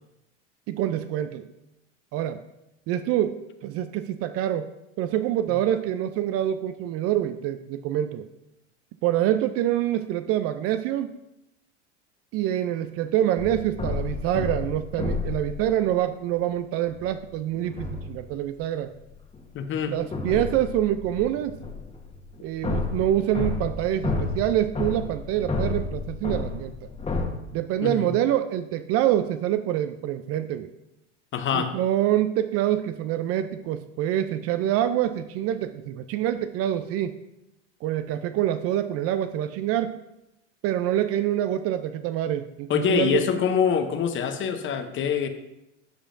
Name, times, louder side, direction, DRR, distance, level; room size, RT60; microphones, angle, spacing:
voice 1, 0.7-1.5 2.1-2.4 2.9-4.7 5.0-8.3 9.0-11.2 12.3-18.9 19.9-21.6 22.4-26.9 27.5-30.7 31.5-37.1 37.8-40.0 40.6-43.2, right 12 dB, 40° right, 11 dB, 0.4 m, -26 dB
sound 1, 13.4-15.8 16.9-17.1 17.5-18.3 19.1-27.2, left 3 dB, 15° left, 1.3 m, -31 dB
voice 2, 19.5-19.9 27.8-28.1 31.3-31.7 42.7-45.3, left 7 dB, 30° left, 9 dB, 0.7 m, -25 dB
12.5 x 4.9 x 2.5 m, 0.89 s
hypercardioid pair, 90°, 37 cm